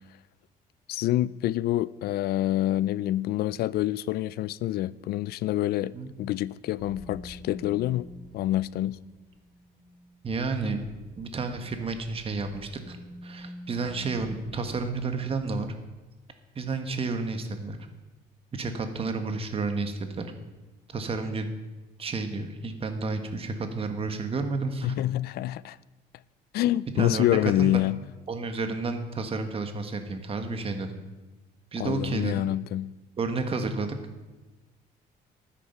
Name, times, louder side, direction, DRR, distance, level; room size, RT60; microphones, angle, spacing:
voice 1, 0.9-5.9 6.2-8.1 8.3-9.0 24.8-25.8 26.5-28.0 31.8-32.9, left 14 dB, 65° left, 0.4 m, -27 dB
sound 1, 6.8-16.0, left 1 dB, 10° right, 3.0 m, -47 dB
voice 2, 10.2-10.8 11.1-13.0 13.2-15.7 16.5-17.8 18.5-20.3 20.9-21.5 22.0-24.9 26.9-27.8 28.3-30.9 31.7-32.4 33.2-34.0, right 3 dB, 35° right, 1.5 m, -31 dB
12.5 x 10.0 x 5.8 m
cardioid pair, 110°, 17 cm